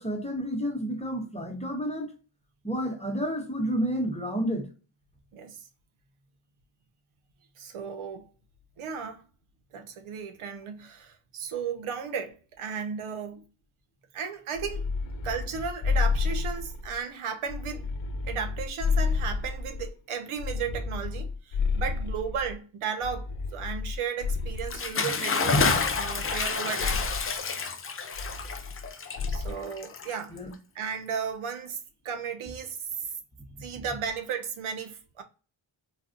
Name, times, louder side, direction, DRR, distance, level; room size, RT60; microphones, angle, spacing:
voice 1, 0.0-2.1 2.6-4.7 30.3-30.5, equal, 15° left, 0.8 m, -30 dB
voice 2, 5.3-5.6 7.6-8.3 8.8-9.2 9.7-13.4 14.1-14.8 15.2-17.9 18.2-25.7 25.9-27.1 29.3-30.4 30.7-31.8 32.0-33.1 33.6-35.2, right 6 dB, 80° right, 0.7 m, -35 dB
sound 1, 14.5-17.0 17.5-19.9 20.4-22.5 23.0-24.9 25.5-26.5 26.8-27.3 28.2-28.9 29.2-29.6, left 4 dB, 70° left, 0.7 m, -31 dB
Bathtub (filling or washing) / Splash splatter, 24.6-30.5, left 4 dB, 30° left, 0.4 m, -29 dB
4.1 x 2.3 x 2.5 m
cardioid pair, 90°, 49 cm